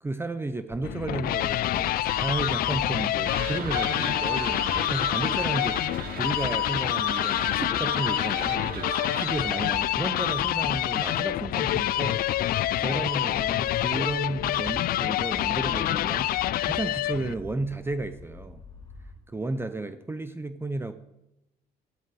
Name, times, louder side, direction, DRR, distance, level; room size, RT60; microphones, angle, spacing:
voice 1, 0.0-8.9 9.1-12.3 12.8-16.3 16.6-18.6 19.3-20.9, right 2 dB, 15° right, 11 dB, 0.7 m, -33 dB
sound 1, 0.7-19.1, left 2 dB, 25° left, 4.5 m, -43 dB
sound 2, 0.8-17.3, left 14 dB, 60° left, 0.4 m, -27 dB
sound 3, 3.3-9.7, right 6 dB, 60° right, 1.8 m, -37 dB
13.0 x 11.5 x 4.7 m, 0.90 s
cardioid pair, 110°, 17 cm